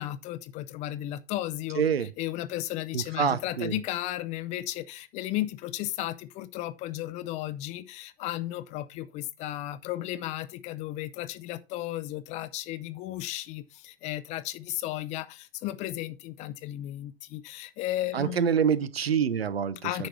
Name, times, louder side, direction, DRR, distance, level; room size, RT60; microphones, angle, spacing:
voice 1, 0.0-1.8 2.2-18.5 19.8-20.1, left 14 dB, 25° left, 0.5 m, -34 dB
voice 2, 1.7-2.1 2.9-3.8 18.1-20.1, right 7 dB, 80° right, 0.9 m, -26 dB
9.6 x 6.3 x 3.2 m
hypercardioid pair, 120°, 30 cm